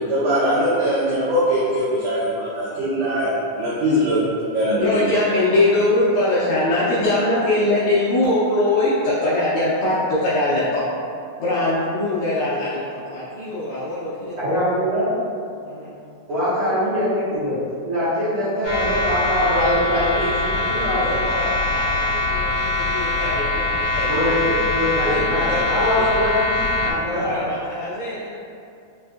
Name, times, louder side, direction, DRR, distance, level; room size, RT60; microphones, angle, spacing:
voice 1, 0.0-4.2 4.5-5.0, equal, 85° right, -8 dB, 1.6 m, -21 dB
voice 2, 4.8-10.8 11.4-12.8 13.1-14.4 15.6-16.0 19.6-24.6 25.0-26.1 27.0-28.3, left 2 dB, 90° left, -10 dB, 1.6 m, -22 dB
voice 3, 14.4-15.1 16.3-17.6 17.8-21.2 24.1-27.3, equal, 65° right, -15 dB, 1.4 m, -23 dB
sound 1, 18.6-26.9, left 2 dB, 60° left, 1.4 m, -23 dB
5.5 x 2.3 x 2.5 m, 2.5 s
omnidirectional pair, 4.0 m